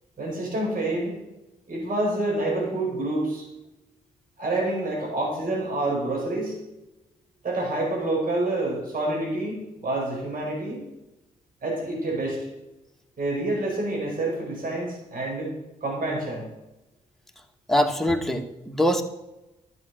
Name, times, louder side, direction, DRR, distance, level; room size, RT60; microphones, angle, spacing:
voice 1, 0.2-1.2 1.7-3.4 4.4-6.6 7.4-10.8 11.6-12.4 13.2-15.5 15.8-16.5, right 2 dB, 60° right, -2 dB, 5.0 m, -27 dB
voice 2, 17.7-19.0, equal, ahead, 3 dB, 1.9 m, -23 dB
12.0 x 7.7 x 6.4 m, 0.96 s
supercardioid pair, 50°, 16 cm